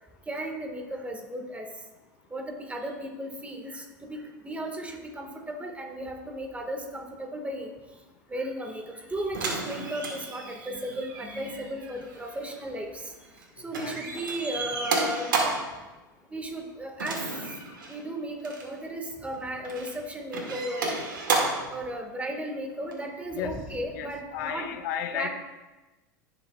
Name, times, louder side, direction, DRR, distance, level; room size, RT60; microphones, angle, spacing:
voice 1, 0.3-1.7 2.3-7.7 8.3-13.1 13.6-15.3 16.3-17.2 17.9-21.0 21.7-24.7 25.1-25.3, right 1 dB, 15° right, 3 dB, 1.7 m, -35 dB
sound 1, 9.3-13.4 13.7-15.7 17.0-18.0 18.4-18.7 19.3-19.9 20.3-21.7 22.9-23.0, right 3 dB, 85° right, 2.2 m, -32 dB
voice 2, 23.9-25.3, left 9 dB, 65° left, 7 dB, 1.1 m, -33 dB
17.0 x 6.6 x 2.4 m, 1.1 s
hypercardioid pair, 90°, 11 cm